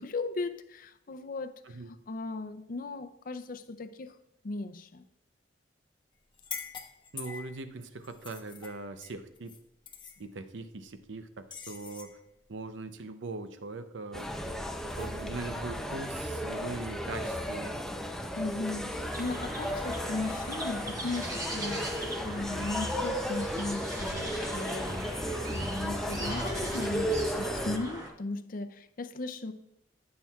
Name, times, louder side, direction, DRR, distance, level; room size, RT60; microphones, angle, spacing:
voice 1, 0.0-1.8 2.1-4.1 4.4-5.0 18.4-29.5, left 3 dB, 50° left, 0.5 m, -37 dB
sound 1, 6.3-7.6 8.0-9.6 9.9-10.2 11.5-12.1, left 6 dB, 25° left, 0.9 m, -43 dB
voice 2, 7.1-9.5 10.2-12.2 12.5-14.3 15.0-17.8 24.1-24.3, right 3 dB, 85° right, 0.6 m, -41 dB
sound 2, 14.1-27.8, equal, 5° left, 0.5 m, -34 dB
sound 3, 19.1-28.1, right 1 dB, 20° right, 1.1 m, -41 dB
13.5 x 7.5 x 2.4 m
head